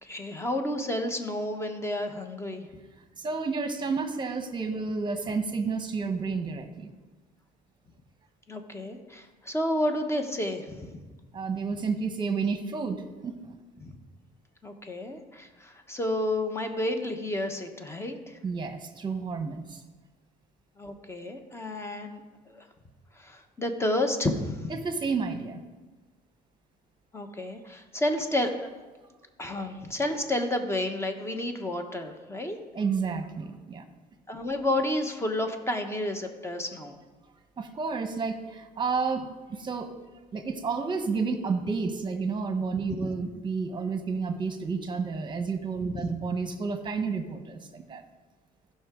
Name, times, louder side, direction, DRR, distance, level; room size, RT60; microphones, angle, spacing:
voice 1, 0.0-2.7 8.5-10.9 13.8-14.0 14.6-18.4 20.8-22.7 23.1-24.8 27.1-28.7 29.4-32.6 34.3-37.0 43.0-43.1 45.9-46.1, left 1 dB, 15° left, 6 dB, 1.1 m, -31 dB
voice 2, 3.2-6.9 11.3-13.0 13.2-13.5 18.4-19.8 24.8-25.6 32.7-33.8 37.6-39.3 39.6-39.9 40.3-48.0, right 4 dB, 25° right, 7 dB, 1.1 m, -30 dB
15.5 x 5.7 x 3.8 m, 1.3 s
cardioid pair, 110°, 17 cm